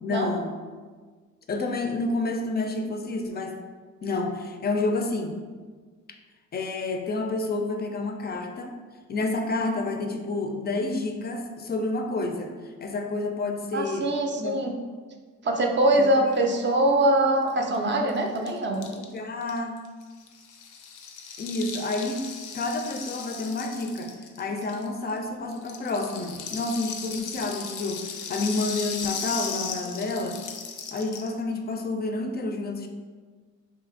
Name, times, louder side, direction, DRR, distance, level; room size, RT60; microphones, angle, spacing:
voice 1, 0.0-0.6 1.5-3.6 4.0-5.3 6.5-8.8 9.1-12.5 12.8-14.1 14.4-14.6 16.0-16.5 17.6-18.4 19.0-19.8 21.4-22.2 22.5-24.1 24.4-30.4 30.9-32.9, left 2 dB, 35° left, 4 dB, 0.4 m, -29 dB
voice 2, 13.7-14.7 15.4-18.8, right 1 dB, 40° right, 3 dB, 0.5 m, -23 dB
Rattle (instrument), 17.5-17.6 17.7-17.8 18.0-25.2 25.5-31.3, left 6 dB, 85° left, 0.5 m, -37 dB
2.7 x 2.5 x 3.7 m, 1.5 s
cardioid pair, 90°, 30 cm